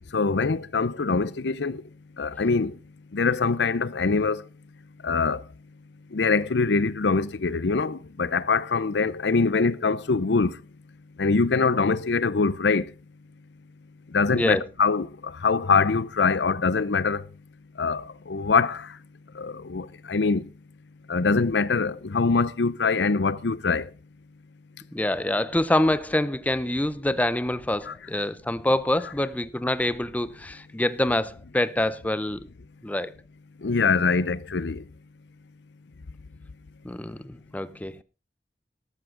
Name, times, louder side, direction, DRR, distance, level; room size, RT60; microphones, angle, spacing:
voice 1, 0.1-1.8 2.2-2.7 3.1-4.4 5.0-5.4 6.1-10.5 11.2-12.8 14.1-15.1 15.4-17.2 17.8-18.9 19.4-20.4 21.1-23.9 27.9-28.0 33.6-34.8, left 4 dB, 80° left, 0.6 m, -23 dB
voice 2, 14.3-14.6 24.9-32.4 32.8-33.1 36.8-38.0, left 1 dB, 10° left, 0.6 m, -26 dB
14.0 x 13.0 x 3.8 m
head